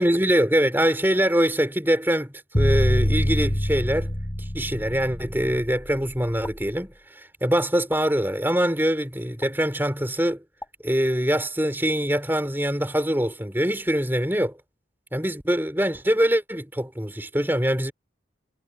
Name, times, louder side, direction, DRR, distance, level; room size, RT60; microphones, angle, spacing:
voice 1, 0.0-4.1 4.4-10.4 10.8-14.6 15.1-17.9, equal, 10° right, 4.1 m, -23 dB
sound 1, 2.5-6.6, equal, 25° left, 2.8 m, -25 dB
sound 2, 6.4-6.6 7.9-8.0 9.4-9.5 10.6-10.7, left 2 dB, 10° left, 3.3 m, -39 dB
head